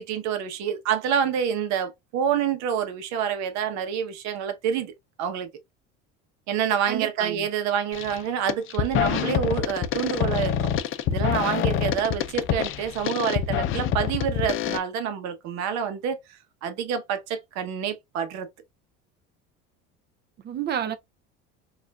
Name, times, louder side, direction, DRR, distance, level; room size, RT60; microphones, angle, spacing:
voice 1, 0.0-4.9 5.2-5.5 6.5-10.6 11.1-16.2 16.6-18.5, right 8 dB, 65° right, 0.9 m, -27 dB
voice 2, 6.9-7.5 20.4-20.9, right 9 dB, 35° right, 0.5 m, -30 dB
sound 1, 7.9-8.2 8.5-14.8, left 9 dB, 45° left, 0.5 m, -26 dB
4.8 x 2.5 x 2.3 m
cardioid pair, 125°, 30 cm